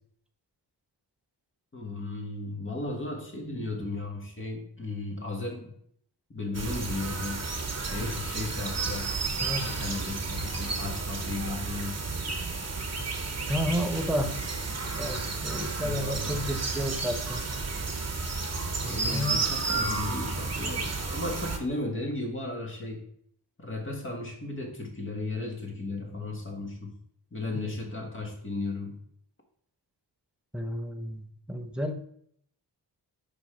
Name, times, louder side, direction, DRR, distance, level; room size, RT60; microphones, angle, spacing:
voice 1, 1.7-5.7 6.3-7.5 7.8-9.1 9.6-12.0 15.8-16.7 18.8-23.0 23.6-27.0 27.3-29.0, left 2 dB, 30° left, 1 dB, 1.6 m, -35 dB
sound 1, 6.5-21.6, right 4 dB, 35° right, 1.0 m, -32 dB
voice 2, 9.4-9.7 13.5-14.4 15.0-17.4 18.8-19.6 30.5-31.9, equal, ahead, 4 dB, 0.7 m, -32 dB
6.0 x 5.0 x 4.4 m, 0.66 s
wide cardioid pair, 100°, 43 cm